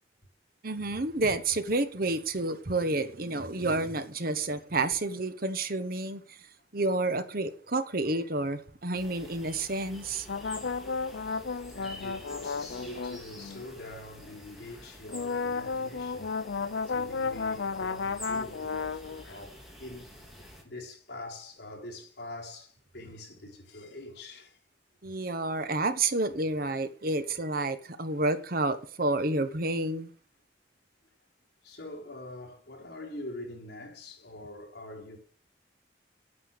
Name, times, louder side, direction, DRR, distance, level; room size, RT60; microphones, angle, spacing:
voice 1, 0.6-6.2 6.7-10.3 25.0-30.1, right 2 dB, 55° right, 1.2 m, -30 dB
sound 1, 8.9-20.6, equal, ahead, 3.5 m, -48 dB
sound 2, 10.3-13.7 15.1-19.3, left 4 dB, 80° left, 0.6 m, -33 dB
voice 2, 11.7-16.3 16.8-24.6 28.1-28.3 31.6-35.2, left 1 dB, 60° left, 4.1 m, -44 dB
9.8 x 9.2 x 6.6 m
head